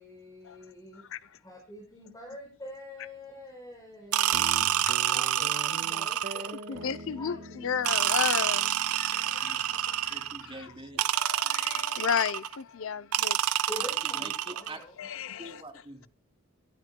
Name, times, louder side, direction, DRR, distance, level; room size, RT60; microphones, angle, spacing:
voice 1, 0.0-1.0 1.4-4.5 5.1-6.9 7.2-7.3 13.7-15.0, left 1 dB, 15° left, 5.0 m, -45 dB
voice 2, 0.9-1.4 6.7-10.7 11.1-13.7 15.0-15.8, left 7 dB, 60° left, 0.6 m, -34 dB
sound 1, 4.1-6.7 7.8-10.4 11.0-12.6 13.1-14.8, right 11 dB, 80° right, 0.6 m, -28 dB
Guitar, 4.3-11.0, right 1 dB, 50° right, 1.6 m, -45 dB
voice 3, 10.1-11.2 13.8-13.9 14.2-14.8 15.4-16.1, right 1 dB, 25° right, 2.9 m, -45 dB
25.0 x 11.0 x 2.2 m
head